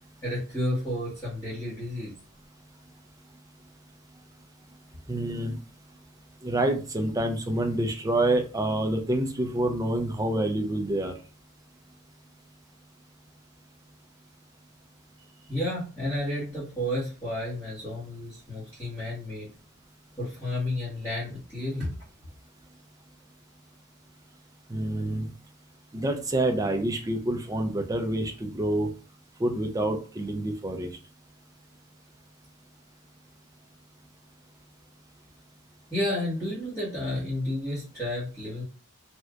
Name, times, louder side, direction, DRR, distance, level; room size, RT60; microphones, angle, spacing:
voice 1, 0.2-2.1 15.4-19.5 20.2-21.9 35.9-38.6, left 1 dB, 10° left, -12 dB, 1.4 m, -31 dB
voice 2, 5.1-5.6 6.4-11.1 24.7-25.3 25.9-28.9 29.4-30.9, right 1 dB, 15° right, 4 dB, 0.4 m, -27 dB
3.3 x 2.8 x 2.4 m, 0.35 s
head